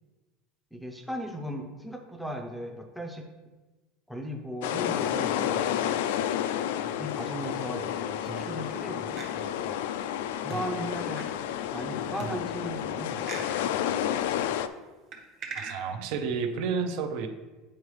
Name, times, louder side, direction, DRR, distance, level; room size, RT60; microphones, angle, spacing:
voice 1, 0.7-3.3 4.1-6.0 7.0-9.8 10.4-11.3 11.7-13.6, equal, ahead, 3 dB, 0.5 m, -37 dB
sound 1, 4.6-14.7, left 10 dB, 85° left, 0.3 m, -30 dB
sound 2, 6.8-7.7 8.2-8.8 9.2-9.3 10.5-11.2 12.2-12.9 13.3-13.5 15.1-15.8, right 4 dB, 30° right, 0.8 m, -41 dB
voice 2, 15.5-17.3, right 5 dB, 55° right, 7 dB, 0.6 m, -30 dB
8.4 x 4.6 x 3.2 m, 1.2 s
cardioid pair, 165°, 0 cm